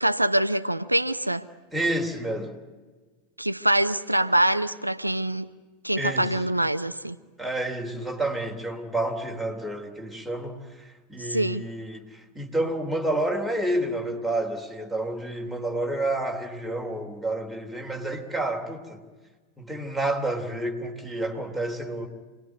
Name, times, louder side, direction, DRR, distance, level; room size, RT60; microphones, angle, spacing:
voice 1, 0.0-1.4 3.4-5.5 5.8-7.2 11.3-11.6, right 1 dB, 85° right, 0.7 m, -24 dB
voice 2, 1.7-2.6 6.0-6.4 7.4-19.0 19.6-22.1, right 1 dB, ahead, 3.4 m, -29 dB
27.5 x 20.0 x 9.5 m
figure-of-eight pair, 90°, 0 cm